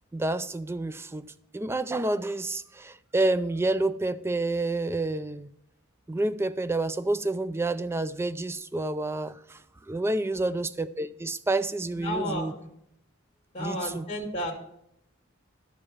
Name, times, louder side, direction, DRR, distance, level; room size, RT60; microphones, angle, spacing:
voice 1, 0.1-1.3 1.5-5.5 6.1-9.6 9.9-12.5 13.6-14.1, right 2 dB, 10° right, 0.4 m, -29 dB
voice 2, 12.0-12.7 13.5-14.5, equal, 30° left, 1.8 m, -33 dB
11.5 x 5.1 x 7.1 m
head